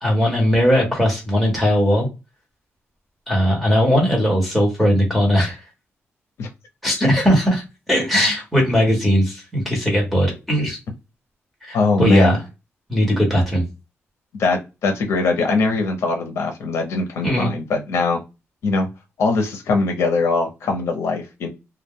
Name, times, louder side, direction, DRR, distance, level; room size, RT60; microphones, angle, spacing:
voice 1, 0.0-2.1 3.3-5.6 6.8-7.6 7.9-10.8 11.6-12.4 12.9-13.7 17.2-17.5, equal, ahead, -2 dB, 1.0 m, -18 dB
voice 2, 11.7-12.4 14.4-18.2 18.6-18.9 19.2-21.5, left 3 dB, 75° left, 4 dB, 0.6 m, -21 dB
2.2 x 2.0 x 3.5 m, 0.26 s
wide cardioid pair, 180°, 5 cm